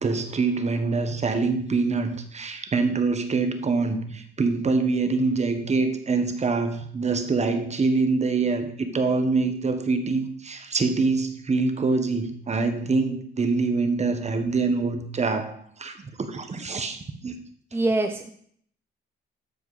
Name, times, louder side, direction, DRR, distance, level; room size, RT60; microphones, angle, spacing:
voice 1, 0.0-17.3, right 4 dB, 35° right, 8 dB, 1.3 m, -25 dB
voice 2, 17.7-18.3, right 2 dB, 10° right, 5 dB, 0.8 m, -24 dB
13.0 x 4.6 x 4.9 m, 0.62 s
cardioid pair, 90°, 20 cm